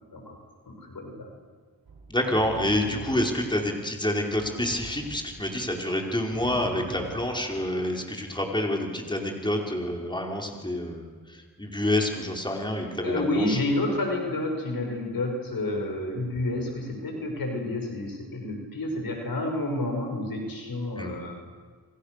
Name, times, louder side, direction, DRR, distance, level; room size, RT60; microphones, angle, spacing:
voice 1, 0.7-1.3 13.0-21.3, left 1 dB, 65° left, 2 dB, 7.2 m, -29 dB
Drum, 1.9-3.7 4.3-5.6 6.3-7.8, right 3 dB, 80° right, 6.8 m, -43 dB
voice 2, 2.1-13.6 21.0-21.2, left 1 dB, 10° left, 1 dB, 5.0 m, -28 dB
29.0 x 26.0 x 6.9 m, 1.5 s
cardioid pair, 55°, 37 cm